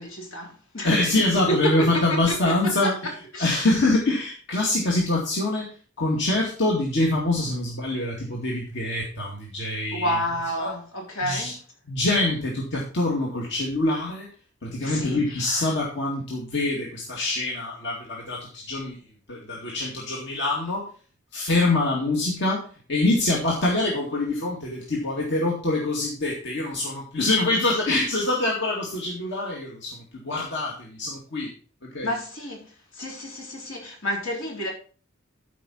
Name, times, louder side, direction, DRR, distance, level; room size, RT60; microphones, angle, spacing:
voice 1, 0.0-0.9 1.5-2.5 2.8-3.6 9.9-11.6 14.8-15.7 32.0-32.7 32.9-34.7, equal, 80° left, 3.7 m, -30 dB
voice 2, 0.8-2.9 3.4-5.7 6.0-10.2 10.6-10.7 11.2-11.5 11.9-14.3 14.6-18.4 18.7-19.0 19.3-20.9 21.3-31.5 31.8-32.1, left 2 dB, 60° left, 2.2 m, -25 dB
13.5 x 5.2 x 4.3 m
head